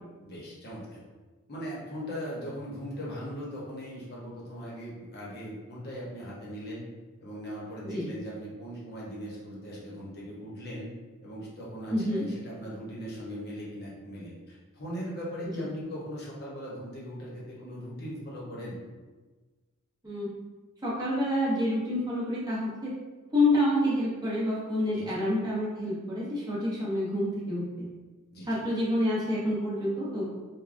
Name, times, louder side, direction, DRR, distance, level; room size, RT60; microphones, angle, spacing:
voice 1, 0.2-1.0 1.5-6.8 7.2-10.9 11.2-18.8 24.9-25.2 28.3-28.6, equal, 45° left, -5 dB, 0.8 m, -39 dB
voice 2, 11.9-12.2 15.6-15.7 20.0-20.3 20.8-22.9 23.3-27.8 28.5-30.3, left 1 dB, 20° right, -7 dB, 0.6 m, -28 dB
3.3 x 2.2 x 2.5 m, 1.3 s
head